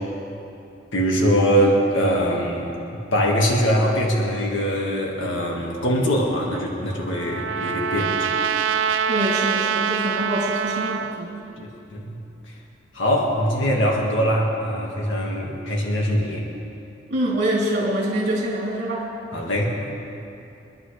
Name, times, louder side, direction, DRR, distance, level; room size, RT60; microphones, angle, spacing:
voice 1, 0.9-2.7 3.1-8.4 11.6-12.2 12.9-16.5 19.3-19.9, equal, 80° left, -2 dB, 1.9 m, -22 dB
Trumpet, 6.5-11.2, right 7 dB, 85° right, 0.5 m, -25 dB
voice 2, 9.1-11.3 17.1-19.1, right 1 dB, 60° right, -5 dB, 3.2 m, -25 dB
27.5 x 11.0 x 3.4 m, 2.8 s
head